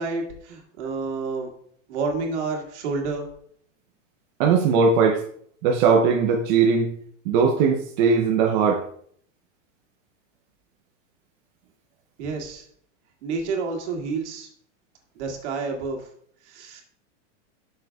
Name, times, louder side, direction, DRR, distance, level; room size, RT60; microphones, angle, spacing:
voice 1, 0.0-1.5 1.9-3.3 12.2-12.7 13.2-14.5 15.2-16.1 16.4-16.8, right 4 dB, 65° right, 1 dB, 2.1 m, -29 dB
voice 2, 4.4-5.2 5.6-7.0 7.3-8.8, right 5 dB, 40° right, 1 dB, 0.7 m, -19 dB
11.5 x 6.4 x 2.3 m, 0.62 s
supercardioid pair, 165°, 37 cm